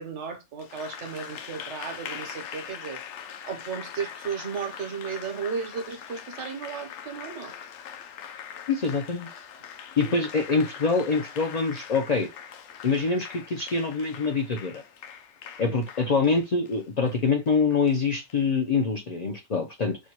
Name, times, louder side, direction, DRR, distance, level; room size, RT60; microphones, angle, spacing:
voice 1, 0.0-3.0 3.4-7.5 10.0-10.1 15.7-15.8, right 6 dB, 70° right, 1.3 m, -34 dB
Applause, 0.6-18.4, left 8 dB, 70° left, 0.9 m, -42 dB
voice 2, 8.7-9.3 10.0-12.3 12.8-14.8 15.6-20.0, left 4 dB, 50° left, 0.5 m, -25 dB
4.3 x 2.2 x 2.9 m
omnidirectional pair, 1.3 m